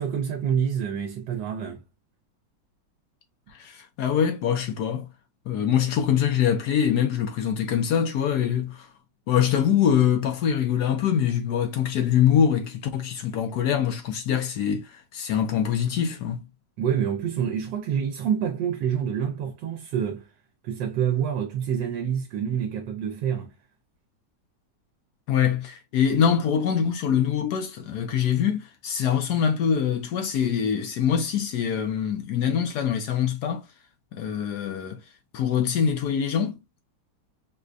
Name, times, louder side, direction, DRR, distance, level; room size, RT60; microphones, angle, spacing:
voice 1, 0.0-1.8 16.8-20.3 20.6-23.5, right 8 dB, 80° right, 1.3 m, -27 dB
voice 2, 3.5-5.1 5.5-8.9 9.3-16.4 25.3-33.7 34.1-35.0 35.3-36.6, left 8 dB, 70° left, 1.1 m, -24 dB
4.9 x 2.2 x 2.4 m
omnidirectional pair, 2.0 m